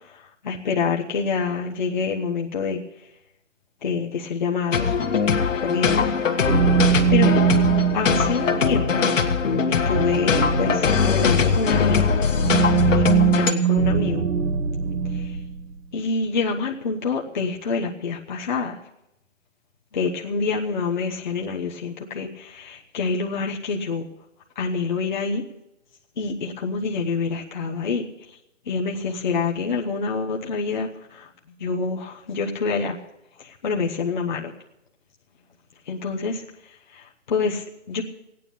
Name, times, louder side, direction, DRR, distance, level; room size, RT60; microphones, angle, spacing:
voice 1, 0.4-2.8 3.8-4.9 5.6-6.1 7.1-7.3 7.9-9.0 9.7-12.1 12.9-13.0 13.3-14.2 15.9-18.7 19.9-24.1 24.6-25.4 26.2-28.0 28.7-30.9 31.6-32.9 33.6-34.5 35.9-36.4 37.3-38.0, left 5 dB, 40° left, -1 dB, 1.0 m, -26 dB
sound 1, 4.7-13.5, left 6 dB, 75° left, 1.5 m, -21 dB
sound 2, 6.4-15.6, right 8 dB, 85° right, 1.4 m, -23 dB
16.0 x 9.5 x 6.9 m, 0.87 s
hypercardioid pair, 175°, 38 cm